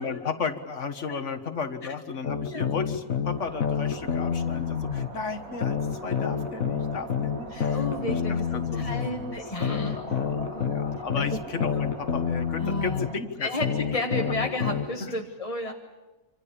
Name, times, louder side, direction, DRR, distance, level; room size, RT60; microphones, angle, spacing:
voice 1, 0.0-9.4 9.7-13.7 15.0-15.1, left 5 dB, 60° left, 8 dB, 1.9 m, -35 dB
sound 1, 2.2-5.1 5.6-9.1 9.6-13.1 13.6-14.9, left 7 dB, 75° left, 1.7 m, -28 dB
sound 2, 3.3-13.2, right 3 dB, 80° right, 2.9 m, -43 dB
voice 2, 7.5-10.0 10.5-10.8 11.2-11.4 11.7-11.9 12.6-13.0 13.4-15.7, left 1 dB, 25° left, 2 dB, 1.5 m, -32 dB
27.0 x 26.5 x 7.1 m, 1.1 s
omnidirectional pair, 1.4 m